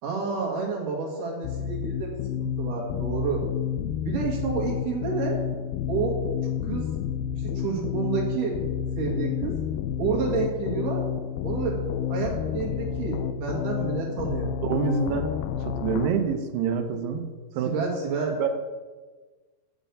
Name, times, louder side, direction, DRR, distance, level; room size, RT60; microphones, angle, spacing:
voice 1, 0.0-3.4 4.0-5.4 5.9-6.2 6.6-6.9 7.4-8.6 9.0-9.6 10.0-11.0 11.4-11.8 12.1-14.5 17.6-18.3, right 5 dB, 60° right, -2 dB, 2.9 m, -29 dB
sound 1, 1.4-16.1, left 8 dB, 85° left, 2.2 m, -30 dB
voice 2, 14.6-15.3 15.7-17.3 17.6-17.9 18.4-18.5, right 7 dB, 80° right, 6 dB, 2.8 m, -26 dB
8.2 x 6.1 x 8.0 m, 1.3 s
omnidirectional pair, 4.9 m